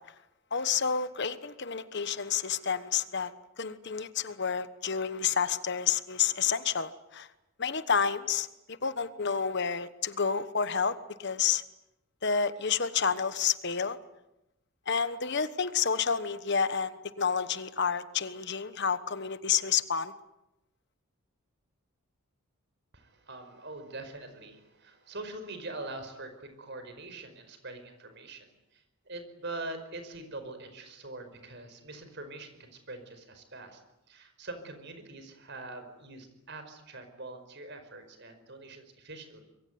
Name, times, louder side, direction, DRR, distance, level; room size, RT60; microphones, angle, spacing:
voice 1, 0.5-3.3 3.6-7.3 7.6-11.6 12.2-14.0 14.9-20.1, left 6 dB, 50° left, 13 dB, 1.2 m, -29 dB
voice 2, 22.9-33.8 34.1-39.4, right 2 dB, 50° right, 9 dB, 5.1 m, -43 dB
25.5 x 23.0 x 9.5 m, 0.91 s
head